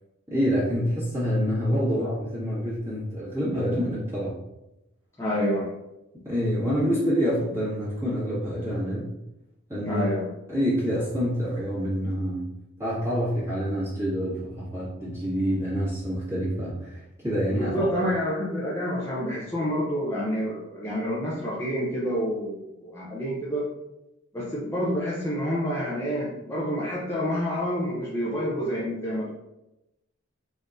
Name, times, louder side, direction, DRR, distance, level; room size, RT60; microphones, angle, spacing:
voice 1, 0.3-4.3 6.2-9.1 9.7-10.0 10.5-12.5 12.8-17.9, equal, 15° right, -11 dB, 1.7 m, -27 dB
voice 2, 5.2-5.7 9.8-10.3 17.6-23.7 24.3-29.3, equal, 15° left, -7 dB, 0.8 m, -28 dB
4.7 x 4.2 x 2.6 m, 0.92 s
head